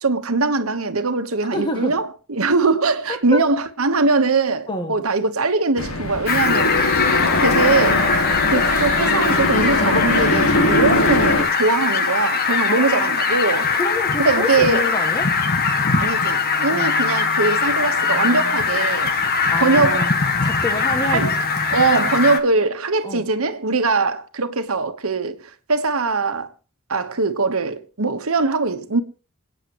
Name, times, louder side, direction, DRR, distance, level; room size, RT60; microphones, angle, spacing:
voice 1, 0.0-6.7 7.4-8.1 8.5-13.7 14.2-14.9 16.0-19.1 19.6-20.1 21.1-21.3 21.7-26.5 26.9-29.0, right 3 dB, 70° right, 1.2 m, -21 dB
voice 2, 1.5-2.0 3.1-3.4 4.7-5.0 7.3-7.5 12.7-13.2 13.7-15.3 16.7-16.9 19.5-20.1 20.4-21.3 23.0-23.3, left 2 dB, 20° left, 1.8 m, -27 dB
sound 1, 5.8-11.4, left 2 dB, 70° left, 2.0 m, -21 dB
Fowl, 6.3-22.4, left 5 dB, 45° left, 1.5 m, -21 dB
27.0 x 9.1 x 3.0 m
head